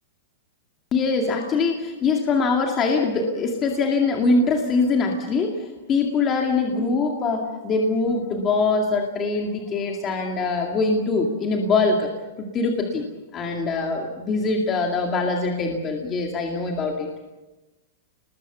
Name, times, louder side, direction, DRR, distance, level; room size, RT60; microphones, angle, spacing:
voice 1, 0.9-12.1 12.4-13.0 13.3-17.1, left 3 dB, 20° left, 1 dB, 2.2 m, -23 dB
29.5 x 20.0 x 6.9 m, 1.1 s
supercardioid pair, 170°, 0 cm